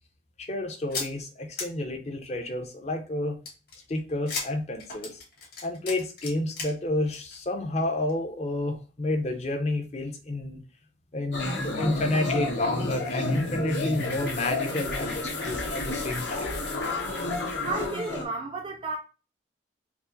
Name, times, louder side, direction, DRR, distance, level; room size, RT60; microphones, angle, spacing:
voice 1, 0.4-3.4 3.9-5.2 5.6-10.6 11.1-16.5 17.0-17.3, left 1 dB, 35° left, 0.6 m, -30 dB
sound 1, 0.9-1.1 1.6-1.7 3.5-6.7 7.0-7.4 7.8-7.9 8.1-8.2, left 4 dB, 55° left, 1.5 m, -35 dB
sound 2, 11.3-18.2, left 2 dB, 75° left, 1.3 m, -30 dB
voice 2, 17.6-19.0, right 3 dB, 30° right, 0.4 m, -32 dB
4.6 x 2.0 x 3.8 m
head